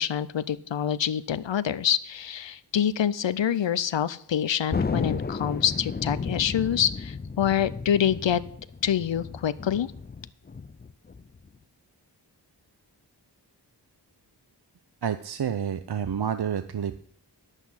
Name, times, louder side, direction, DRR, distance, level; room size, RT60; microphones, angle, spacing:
voice 1, 0.0-8.4 8.8-9.9, left 9 dB, 90° left, 16 dB, 0.6 m, -26 dB
Thunder, 4.7-11.6, left 4 dB, 25° left, 0.4 m, -33 dB
voice 2, 15.0-17.0, right 8 dB, 65° right, 10 dB, 0.6 m, -29 dB
10.5 x 8.2 x 5.6 m, 0.63 s
wide cardioid pair, 45°, 43 cm